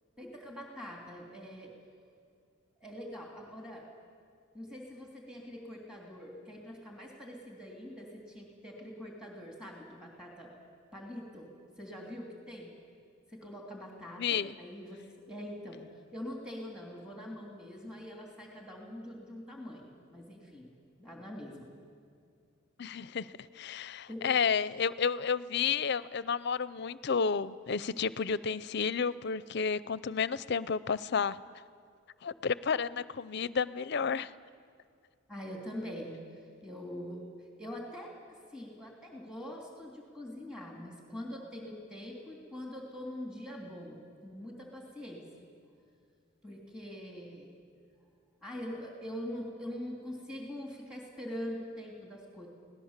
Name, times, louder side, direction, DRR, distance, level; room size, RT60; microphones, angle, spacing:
voice 1, 0.2-1.7 2.8-3.9 4.5-10.5 10.9-11.5 11.8-12.7 13.3-15.0 15.3-20.7 21.0-21.7 24.1-24.3 35.3-37.2 37.6-45.5 46.4-47.6 48.4-52.5, equal, 5° right, -1 dB, 3.0 m, -44 dB
voice 2, 14.2-14.5 22.8-31.4 32.2-34.3, left 6 dB, 55° left, 17 dB, 0.5 m, -31 dB
24.0 x 18.0 x 7.4 m, 2.3 s
head